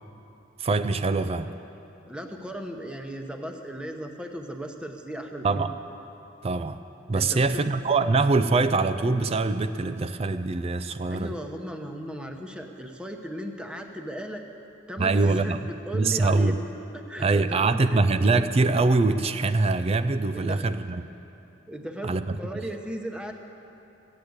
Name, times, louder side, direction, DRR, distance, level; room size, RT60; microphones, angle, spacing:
voice 1, 0.6-1.5 5.4-5.7 6.4-6.8 7.1-11.3 15.0-15.6 15.9-16.6 17.2-21.0 22.0-22.4, right 3 dB, 30° right, 10 dB, 0.4 m, -23 dB
voice 2, 2.1-5.6 7.1-7.6 11.1-14.5 14.9-15.6 15.9-16.5 16.9-18.1 20.3-20.7 21.7-23.3, equal, 5° right, 4 dB, 0.9 m, -36 dB
15.5 x 8.6 x 8.0 m, 2.8 s
head